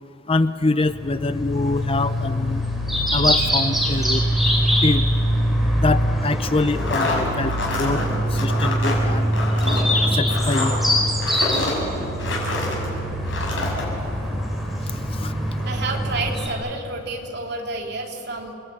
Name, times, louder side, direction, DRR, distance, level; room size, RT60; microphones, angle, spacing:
voice 1, 0.3-2.6 3.1-4.3 4.8-5.1 5.7-8.0 8.3-9.3 10.1-10.8 14.8-15.4, left 2 dB, 30° left, 12 dB, 0.6 m, -24 dB
sound 1, 0.9-16.5, equal, ahead, 4.3 m, -23 dB
sound 2, 6.7-12.9 13.2-13.8, left 2 dB, 65° left, 6.8 m, -27 dB
voice 2, 15.6-18.6, right 3 dB, 55° right, 1 dB, 3.2 m, -30 dB
28.5 x 21.5 x 9.1 m, 2.8 s
head